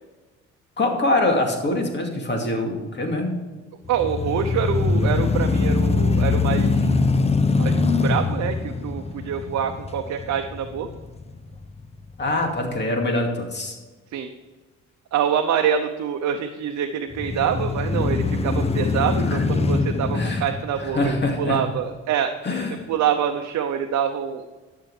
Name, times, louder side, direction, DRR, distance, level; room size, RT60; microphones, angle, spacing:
voice 1, 0.8-3.4 12.2-13.8 19.3-19.4 20.1-20.5 20.8-21.6 22.4-22.9, left 2 dB, 35° left, 2 dB, 2.4 m, -24 dB
sound 1, 3.9-12.0 12.5-12.6 17.1-21.6, left 4 dB, 20° left, 0.7 m, -23 dB
voice 2, 3.9-6.9 7.5-10.9 14.1-14.3 15.1-22.4 22.9-24.5, right 8 dB, 65° right, 5 dB, 0.8 m, -25 dB
12.0 x 6.8 x 4.9 m, 1.3 s
cardioid pair, 90°, 30 cm